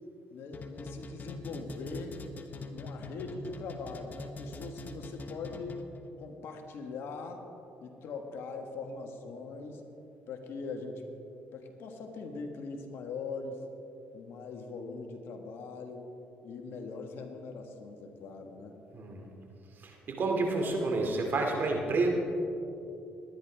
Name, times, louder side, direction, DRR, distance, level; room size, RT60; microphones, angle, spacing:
voice 1, 0.3-2.2 2.5-5.8 6.2-7.4 7.8-9.8 10.3-11.1 11.5-13.6 14.1-16.1 16.4-18.8, left 4 dB, 70° left, 4 dB, 1.6 m, -41 dB
sound 1, 0.5-6.0, left 2 dB, 45° left, 1.1 m, -43 dB
voice 2, 19.8-22.1, right 3 dB, 55° right, 1 dB, 2.5 m, -29 dB
20.5 x 10.5 x 3.5 m, 2.9 s
supercardioid pair, 65°, 4 cm